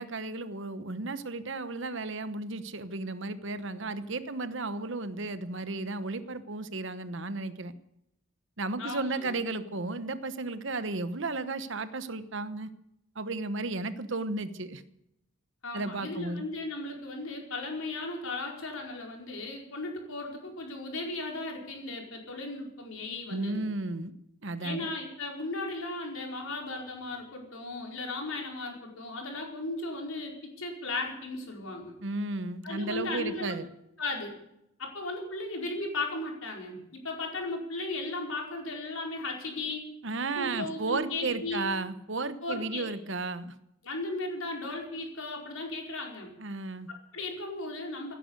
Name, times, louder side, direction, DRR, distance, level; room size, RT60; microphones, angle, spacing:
voice 1, 0.0-7.7 8.6-12.7 13.1-14.8 15.7-16.5 23.3-24.1 24.4-24.9 32.0-33.7 40.0-43.5 46.4-46.9, right 3 dB, 60° right, 12 dB, 1.0 m, -34 dB
voice 2, 8.8-9.4 15.6-23.6 24.6-31.9 32.6-33.5 34.0-34.3 34.8-39.8 40.3-41.6 42.4-42.8 43.8-46.3 46.9-48.1, left 2 dB, 70° left, 1 dB, 4.8 m, -36 dB
17.0 x 10.5 x 8.1 m, 0.81 s
head